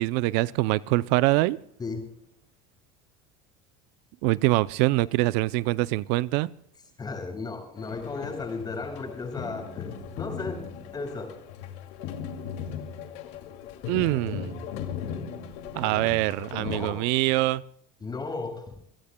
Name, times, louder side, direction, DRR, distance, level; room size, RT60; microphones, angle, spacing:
voice 1, 0.0-1.6 4.2-6.5 13.9-14.6 15.7-17.6, right 19 dB, 65° right, 0.5 m, -24 dB
voice 2, 1.8-2.1 7.0-10.7 10.9-11.4 16.0-16.1 16.6-17.0 18.0-18.7, left 3 dB, 20° left, 7.1 m, -35 dB
sound 1, 7.8-16.9, left 7 dB, 65° left, 2.4 m, -38 dB
28.5 x 16.5 x 2.2 m
supercardioid pair, 120°, 19 cm